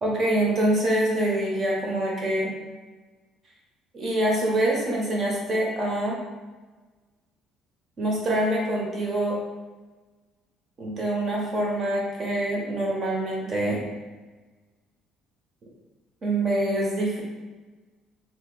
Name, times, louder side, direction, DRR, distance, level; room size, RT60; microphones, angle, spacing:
voice 1, 0.0-2.5 3.9-6.2 8.0-9.4 10.8-13.8 16.2-17.2, right 1 dB, 35° right, -3 dB, 0.9 m, -25 dB
2.9 x 2.6 x 3.7 m, 1.3 s
cardioid pair, 150°, 0 cm